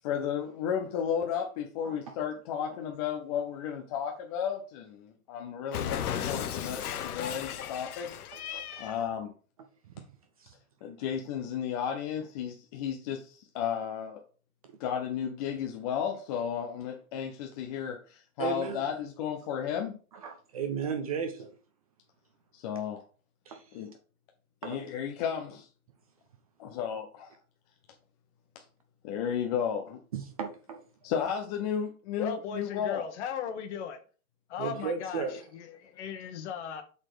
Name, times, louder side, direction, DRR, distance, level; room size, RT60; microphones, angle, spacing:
voice 1, 0.0-8.1 8.8-9.3 10.8-14.2 14.8-20.0 22.5-23.0 23.7-23.9 24.6-25.7 26.6-27.4 28.5-28.6 29.0-30.0 31.0-33.1, left 8 dB, 25° left, 0.6 m, -33 dB
Cat, 5.7-9.0, left 9 dB, 85° left, 1.1 m, -35 dB
voice 2, 8.5-9.0 10.4-10.5 14.6-14.7 18.4-18.8 20.2-21.6 23.5-23.6 24.6-24.8 30.1-30.8 34.6-35.4, right 6 dB, 25° right, 0.4 m, -35 dB
voice 3, 32.2-34.0 34.5-36.8, left 7 dB, 50° left, 1.4 m, -37 dB
7.6 x 4.2 x 4.9 m
supercardioid pair, 160°, 44 cm